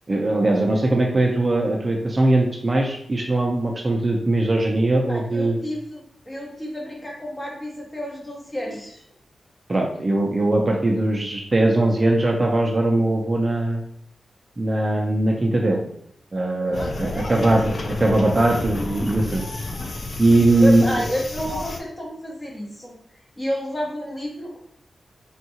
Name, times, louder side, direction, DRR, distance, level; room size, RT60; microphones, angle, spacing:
voice 1, 0.1-5.6 9.7-13.8 14.6-15.8 16.3-19.4 20.2-20.8, right 2 dB, 30° right, 0 dB, 0.4 m, -20 dB
voice 2, 5.1-9.0 16.6-17.2 20.6-23.0 23.4-24.6, equal, 25° left, -3 dB, 0.9 m, -30 dB
sound 1, 16.7-21.8, left 2 dB, 50° left, 0.4 m, -31 dB
3.5 x 2.3 x 2.7 m, 0.71 s
wide cardioid pair, 110°, 0 cm